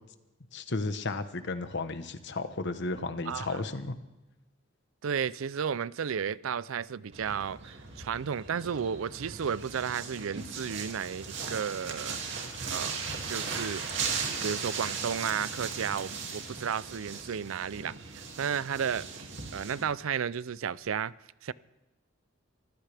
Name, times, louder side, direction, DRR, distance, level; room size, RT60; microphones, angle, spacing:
voice 1, 0.5-4.0, left 3 dB, 60° left, 1.1 m, -33 dB
voice 2, 3.3-3.6 5.0-12.2 12.7-14.0 14.4-21.1 21.4-21.5, right 7 dB, 85° right, 0.5 m, -33 dB
sound 1, 7.1-19.8, right 5 dB, 65° right, 2.5 m, -37 dB
23.5 x 14.5 x 3.4 m
head